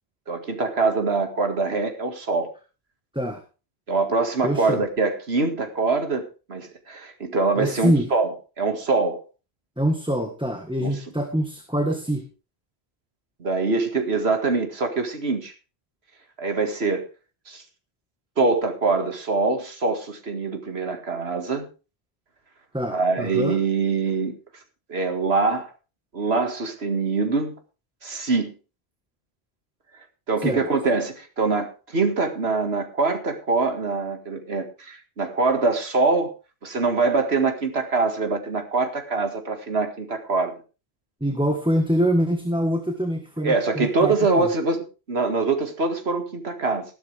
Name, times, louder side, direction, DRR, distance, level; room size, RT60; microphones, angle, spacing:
voice 1, 0.3-2.5 3.9-8.3 8.6-9.2 10.8-11.0 13.4-15.5 16.4-17.1 17.5-17.6 18.4-21.7 22.9-24.3 24.9-25.7 26.1-27.6 28.0-28.5 30.3-36.3 36.6-40.5 43.4-46.9, right 3 dB, 80° right, 6 dB, 2.2 m, -24 dB
voice 2, 4.4-4.8 7.6-8.1 9.8-12.2 22.7-23.6 30.4-30.7 41.2-44.5, equal, 5° right, 4 dB, 1.5 m, -24 dB
14.5 x 12.0 x 3.5 m, 0.32 s
omnidirectional pair, 1.0 m